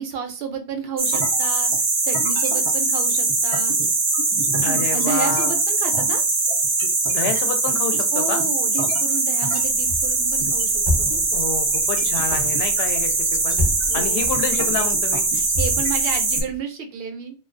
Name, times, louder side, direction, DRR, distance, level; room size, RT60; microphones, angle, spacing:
voice 1, 0.0-3.7 4.7-6.2 8.1-11.2 13.9-14.3 15.3-17.4, right 6 dB, 65° right, 4 dB, 0.7 m, -31 dB
sound 1, 1.0-16.4, right 3 dB, 50° right, 0.3 m, -21 dB
voice 2, 4.6-5.5 7.1-8.4 11.3-13.6 13.9-15.3, left 5 dB, 70° left, 7 dB, 0.8 m, -28 dB
sound 2, 9.6-16.6, left 1 dB, 25° left, 0.7 m, -31 dB
2.3 x 2.2 x 2.4 m, 0.34 s
omnidirectional pair, 1.1 m